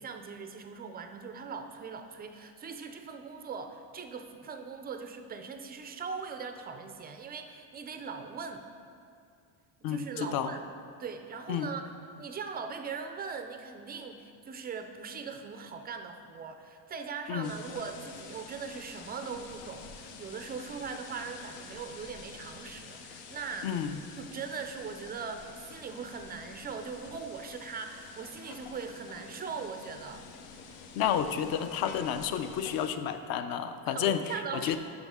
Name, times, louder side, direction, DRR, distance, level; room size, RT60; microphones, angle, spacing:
voice 1, 0.0-8.6 9.9-10.6 11.0-11.9 12.2-23.7 24.2-30.3 33.9-34.8, right 5 dB, 25° right, 7 dB, 0.3 m, -40 dB
voice 2, 9.8-10.5 11.5-11.7 17.3-17.5 23.6-24.0 31.0-34.8, left 9 dB, 50° left, 9 dB, 0.6 m, -31 dB
sound 1, 17.4-32.9, left 5 dB, 80° left, 0.9 m, -48 dB
9.6 x 6.2 x 3.6 m, 2.3 s
cardioid pair, 120°, 48 cm